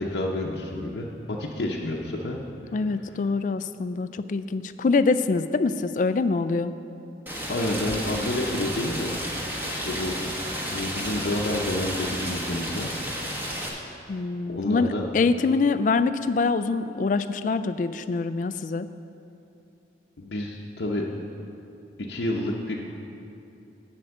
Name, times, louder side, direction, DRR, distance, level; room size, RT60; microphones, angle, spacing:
voice 1, 0.0-2.4 7.5-9.1 9.7-10.1 10.7-13.0 14.5-15.1 20.2-21.0 22.1-22.9, left 1 dB, 75° left, -2 dB, 0.7 m, -29 dB
voice 2, 2.7-6.7 14.1-18.9, left 4 dB, 45° left, 12 dB, 0.3 m, -25 dB
Rain, 7.3-13.7, equal, 10° right, 1.0 m, -32 dB
7.8 x 6.2 x 7.6 m, 2.8 s
head